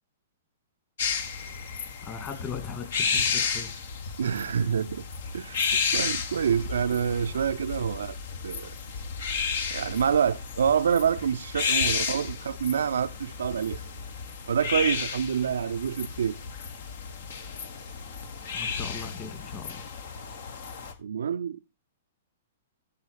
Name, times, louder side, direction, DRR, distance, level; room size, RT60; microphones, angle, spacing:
sound 1, 1.0-20.9, left 6 dB, 60° left, 1.5 m, -32 dB
voice 1, 2.0-3.7 18.5-19.9, left 6 dB, 30° left, 2.6 m, -39 dB
voice 2, 4.2-5.0 5.3-8.2 8.4-8.7 9.7-13.8 14.5-16.4 21.0-21.6, right 7 dB, 70° right, 0.4 m, -27 dB
14.0 x 4.8 x 4.5 m
figure-of-eight pair, 115°, 0 cm